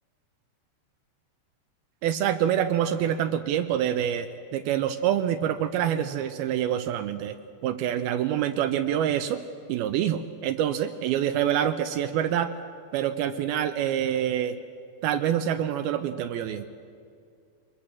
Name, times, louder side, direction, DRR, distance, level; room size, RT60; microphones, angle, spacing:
voice 1, 2.0-7.4 7.6-9.4 9.7-12.5 12.9-14.6 15.0-16.7, right 10 dB, 80° right, 9 dB, 2.6 m, -26 dB
23.0 x 21.5 x 7.6 m, 2.3 s
omnidirectional pair, 4.5 m